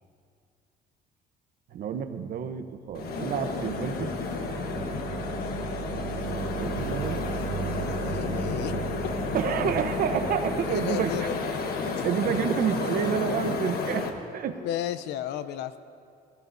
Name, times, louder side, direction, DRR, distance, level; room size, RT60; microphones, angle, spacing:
voice 1, 1.7-4.1 6.6-7.3 9.3-11.2 11.8-14.6, right 8 dB, 60° right, 8 dB, 0.9 m, -29 dB
sound 1, 2.9-14.1, left 4 dB, 65° left, 1.3 m, -31 dB
sound 2, 2.9-12.2 12.5-12.8, right 10 dB, 35° right, 0.4 m, -37 dB
voice 2, 7.9-8.7 9.0-9.1 10.7-11.4 12.0-12.1 14.6-15.8, left 10 dB, 85° left, 13 dB, 0.7 m, -33 dB
21.0 x 16.0 x 2.7 m, 2.4 s
cardioid pair, 110°, 17 cm